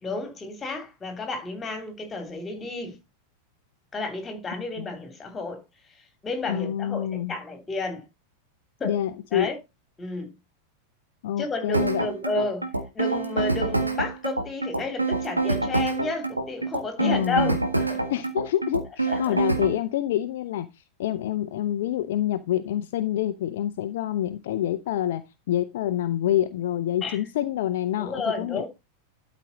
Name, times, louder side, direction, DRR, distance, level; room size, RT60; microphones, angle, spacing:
voice 1, 0.0-3.0 3.9-5.6 6.2-8.0 8.8-8.9 9.3-9.5 10.0-10.3 11.4-12.7 12.9-18.0 19.1-19.4 27.0-27.2 28.0-28.7, left 3 dB, 20° left, 3.1 m, -31 dB
voice 2, 6.5-7.3 8.8-9.5 11.2-12.1 17.0-17.6 18.1-28.6, left 12 dB, 55° left, 0.6 m, -27 dB
sound 1, 11.7-19.8, right 3 dB, 85° right, 1.6 m, -26 dB
12.0 x 5.1 x 4.2 m
figure-of-eight pair, 90°, 0 cm